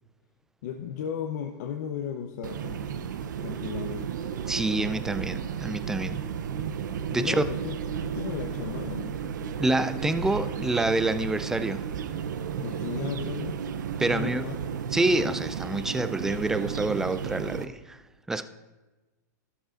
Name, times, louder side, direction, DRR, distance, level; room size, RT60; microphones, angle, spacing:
voice 1, 0.6-4.1 7.2-7.8 8.0-9.2 12.6-13.6 14.1-14.6, left 8 dB, 60° left, 0.8 m, -35 dB
sound 1, 2.4-17.6, right 8 dB, 80° right, 0.6 m, -33 dB
voice 2, 4.5-6.2 7.1-7.4 9.6-11.9 14.0-14.5 14.9-18.0 18.3-18.4, right 2 dB, 5° right, 0.3 m, -27 dB
13.0 x 12.5 x 2.5 m
hypercardioid pair, 135°, 10 cm